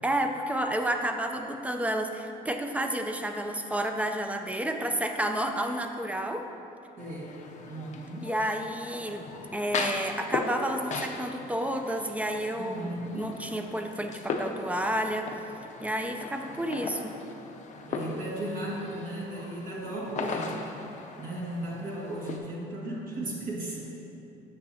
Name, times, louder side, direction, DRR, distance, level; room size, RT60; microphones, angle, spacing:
voice 1, 0.0-6.5 8.2-9.3 9.5-15.3 15.8-17.2 20.2-20.6, right 1 dB, 10° right, 5 dB, 0.5 m, -30 dB
sound 1, 7.0-22.4, left 4 dB, 45° left, 0.6 m, -38 dB
voice 2, 7.0-8.3 12.6-13.5 17.9-20.9 21.2-23.8, right 1 dB, 55° right, -4 dB, 1.6 m, -36 dB
9.5 x 6.2 x 2.8 m, 2.9 s
cardioid pair, 110°, 17 cm